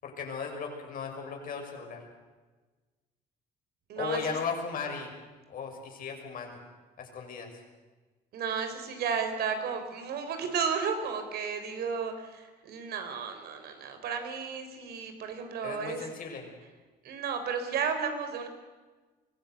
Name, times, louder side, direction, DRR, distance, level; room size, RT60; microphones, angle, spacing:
voice 1, 0.0-2.0 4.0-5.1 5.5-6.5 7.0-7.5 15.6-16.4, left 5 dB, 55° left, 2 dB, 6.1 m, -36 dB
voice 2, 3.9-4.2 8.3-16.0 17.0-18.5, right 6 dB, 70° right, 7 dB, 4.0 m, -33 dB
23.5 x 16.5 x 8.0 m, 1.3 s
cardioid pair, 110°, 17 cm